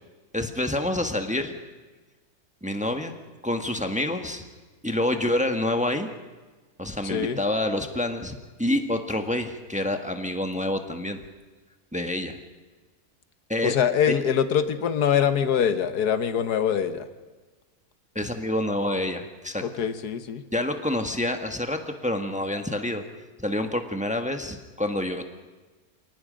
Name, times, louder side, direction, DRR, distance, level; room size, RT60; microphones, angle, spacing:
voice 1, 0.3-1.5 2.6-3.1 3.4-4.4 4.8-6.1 6.8-11.2 11.9-12.4 13.5-13.7 18.1-19.6 20.5-23.0 23.4-25.2, left 1 dB, 5° right, 6 dB, 1.2 m, -27 dB
voice 2, 7.0-7.4 13.6-17.1 19.6-20.4, left 8 dB, 90° left, 10 dB, 1.7 m, -24 dB
27.5 x 18.5 x 5.1 m, 1.3 s
omnidirectional pair, 1.6 m